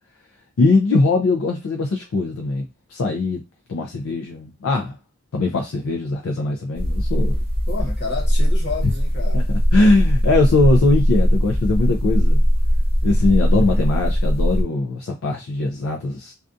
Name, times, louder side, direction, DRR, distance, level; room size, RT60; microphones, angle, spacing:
voice 1, 0.6-3.4 3.7-5.0 5.3-7.4 9.3-9.4 9.7-12.4 13.0-16.3, left 3 dB, 70° left, 0.4 m, -20 dB
sound 1, 6.7-14.6, equal, 25° right, 0.8 m, -19 dB
voice 2, 7.7-9.5 13.7-14.1, left 3 dB, 55° left, 1.0 m, -31 dB
2.4 x 2.3 x 2.5 m
head